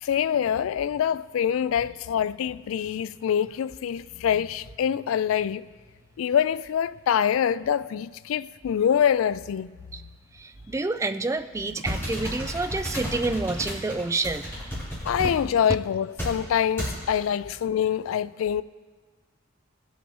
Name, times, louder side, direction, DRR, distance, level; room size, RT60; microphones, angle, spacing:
voice 1, 0.0-5.7 6.2-9.7 15.0-18.6, left 8 dB, 85° left, 0.3 m, -25 dB
voice 2, 10.4-14.5, right 3 dB, 15° right, 0.3 m, -28 dB
sound 1, 11.8-15.4 16.2-16.4 16.8-17.0, equal, 10° left, 4.0 m, -32 dB
20.0 x 8.1 x 3.1 m
head